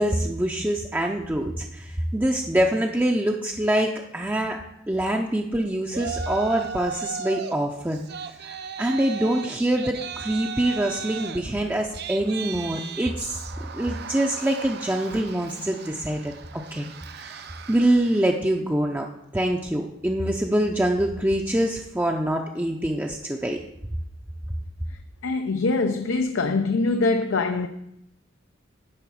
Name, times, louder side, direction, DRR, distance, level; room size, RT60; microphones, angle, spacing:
voice 1, 0.0-4.6 4.9-8.0 8.4-13.4 13.7-16.9 17.2-17.4 17.7-19.1 19.3-23.6, right 1 dB, 10° right, 0.5 m, -25 dB
Yell, 5.9-7.6 7.9-18.4, right 7 dB, 55° right, 0.6 m, -37 dB
voice 2, 25.2-27.7, left 3 dB, 75° left, 0.5 m, -23 dB
10.5 x 4.0 x 7.0 m
head